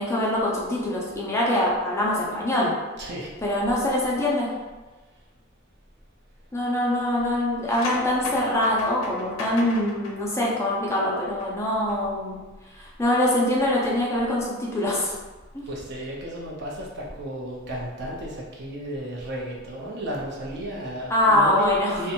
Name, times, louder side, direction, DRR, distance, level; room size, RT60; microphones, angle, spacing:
voice 1, 0.0-2.7 3.4-4.5 6.5-12.4 12.7-15.1 15.5-15.6 21.1-22.1, left 1 dB, 15° left, -5 dB, 0.4 m, -24 dB
voice 2, 3.0-3.3 15.6-22.1, right 1 dB, 55° right, -3 dB, 0.6 m, -33 dB
sound 1, 7.7-11.5 11.8-12.0, left 2 dB, 85° left, 0.4 m, -37 dB
2.5 x 2.1 x 2.8 m, 1.3 s
head